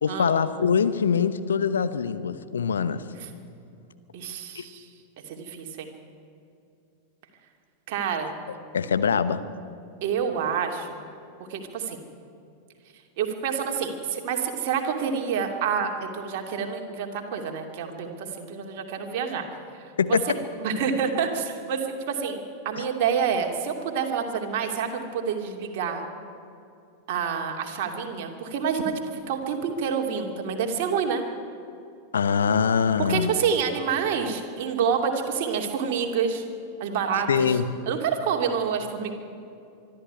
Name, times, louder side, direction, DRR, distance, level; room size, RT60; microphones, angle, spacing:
voice 1, 0.0-3.0 4.5-4.6 8.7-9.4 20.0-20.2 32.1-33.3 37.3-37.6, left 6 dB, 70° left, 11 dB, 1.0 m, -23 dB
voice 2, 4.1-4.9 5.3-5.9 7.9-8.3 10.0-10.9 11.5-12.0 13.2-19.4 20.6-22.4 22.6-26.0 27.1-28.9 29.3-31.2 33.0-36.4 36.8-37.6 37.9-39.1, right 6 dB, 50° right, 3 dB, 2.7 m, -28 dB
24.0 x 12.0 x 9.6 m, 2.5 s
figure-of-eight pair, 90°, 0 cm